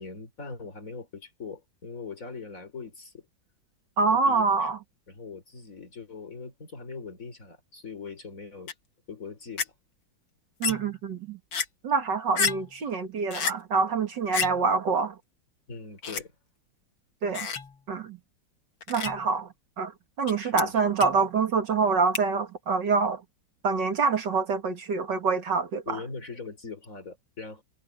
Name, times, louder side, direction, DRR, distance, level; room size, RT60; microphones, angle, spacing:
voice 1, 0.0-3.3 4.1-4.7 5.1-8.7 9.1-9.7 12.8-12.9 15.7-16.3 20.4-20.8 25.9-27.6, left 4 dB, 40° left, 4.4 m, -41 dB
voice 2, 4.0-4.8 10.6-11.4 11.8-15.2 17.2-17.5 17.9-18.2 18.9-19.5 19.8-19.9 20.2-23.2 23.6-26.0, right 4 dB, 65° right, 2.5 m, -26 dB
sound 1, 8.7-8.8 9.6-9.7 10.6-11.0 11.5-11.7 12.4-12.8 13.3-13.5 14.3-14.7 16.0-16.2 17.3-17.8 18.8-19.3 20.3-20.4 20.6-20.7 21.0-21.3 22.1-22.2, left 6 dB, 75° left, 2.7 m, -30 dB
omnidirectional pair, 2.1 m